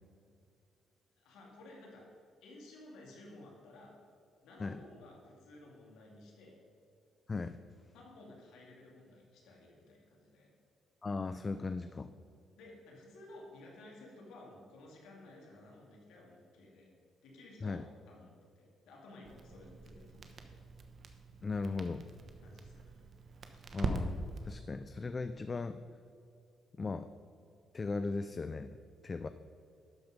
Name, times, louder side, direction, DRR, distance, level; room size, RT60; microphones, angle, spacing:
voice 1, 1.2-2.1 2.4-3.9 4.4-6.6 7.9-10.5 12.5-16.9 17.2-17.8 18.1-20.6 22.4-23.0 23.5-23.6, left 2 dB, 90° left, -2 dB, 2.4 m, -55 dB
voice 2, 11.0-12.1 17.6-17.8 21.4-22.0 23.7-25.8 26.8-27.1 27.7-28.8 29.0-29.3, left 3 dB, 30° left, 11 dB, 0.4 m, -37 dB
Crackle, 19.2-24.5, right 3 dB, 50° right, 1.0 m, -42 dB
12.0 x 5.5 x 5.2 m, 2.5 s
cardioid pair, 90°, 0 cm